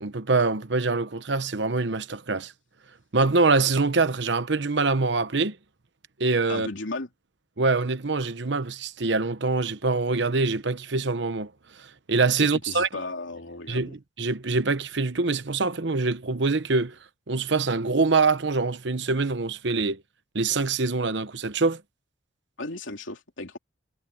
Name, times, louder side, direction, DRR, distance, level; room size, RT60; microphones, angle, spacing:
voice 1, 0.0-2.5 3.1-5.6 6.2-6.7 7.6-11.5 12.1-12.9 13.7-13.9 14.2-16.9 17.3-20.0 20.3-21.8, right 3 dB, 70° right, 1.0 m, -24 dB
voice 2, 6.5-7.1 12.6-14.0 22.6-23.6, left 2 dB, 90° left, 3.0 m, -35 dB
head